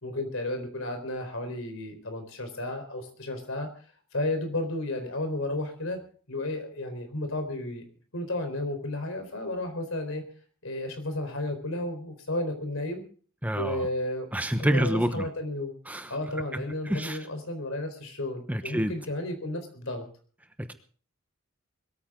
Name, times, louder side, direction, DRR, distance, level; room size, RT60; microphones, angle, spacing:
voice 1, 0.0-3.7 4.1-6.0 6.3-7.8 8.1-10.2 10.6-13.0 13.5-14.3 14.6-15.7 16.1-20.1, left 1 dB, 70° left, 6 dB, 4.3 m, -33 dB
voice 2, 13.4-13.9 14.3-15.3 15.9-16.1 16.5-17.2 18.5-18.9 20.6-20.7, equal, 5° right, 8 dB, 1.1 m, -28 dB
22.0 x 14.0 x 3.9 m, 0.43 s
head